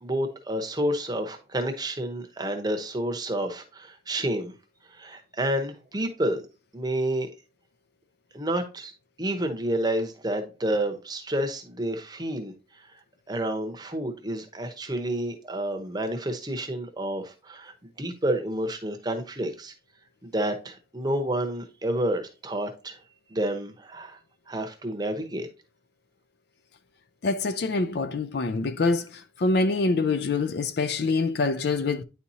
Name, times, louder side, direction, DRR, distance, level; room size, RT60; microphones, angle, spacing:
voice 1, 0.0-4.5 4.9-6.5 6.7-7.3 8.3-8.9 9.2-12.5 13.3-19.7 20.2-23.0 23.3-24.2 24.5-25.5, right 1 dB, 20° right, 0.8 m, -29 dB
voice 2, 27.2-29.1 29.4-32.0, left 3 dB, 55° left, 0.4 m, -25 dB
9.6 x 4.2 x 2.7 m
head